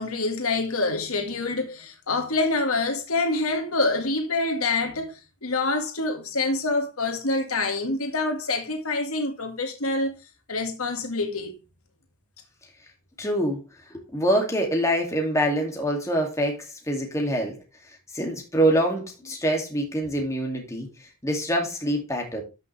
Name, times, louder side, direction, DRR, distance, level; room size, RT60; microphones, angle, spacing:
voice 1, 0.0-10.1 10.5-11.5, left 3 dB, 80° left, 2.0 m, -26 dB
voice 2, 13.2-13.6 13.9-17.6 18.1-20.9 21.2-22.4, right 1 dB, 15° left, 2.5 m, -25 dB
12.5 x 6.2 x 3.4 m
head